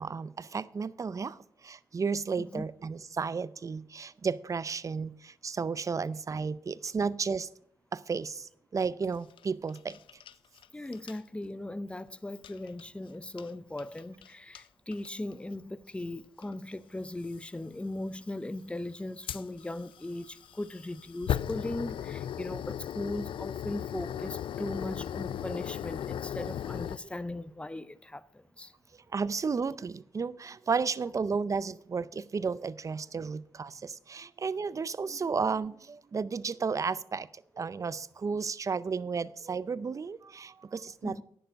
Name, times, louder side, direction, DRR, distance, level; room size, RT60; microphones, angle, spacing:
voice 1, 0.0-7.5 7.9-10.0 29.1-37.3 37.6-41.2, right 5 dB, 40° right, 0.5 m, -33 dB
sound 1, 9.0-10.7 10.9-11.2 12.4-12.8 13.4-13.5 13.8-14.3 14.6-14.7 14.9-15.3 16.4-16.5 17.3-17.5 19.3-27.0, left 10 dB, 75° left, 0.3 m, -37 dB
voice 2, 10.7-28.7 41.0-41.2, left 1 dB, 15° left, 0.6 m, -38 dB
10.0 x 6.9 x 6.3 m
cardioid pair, 70°, 9 cm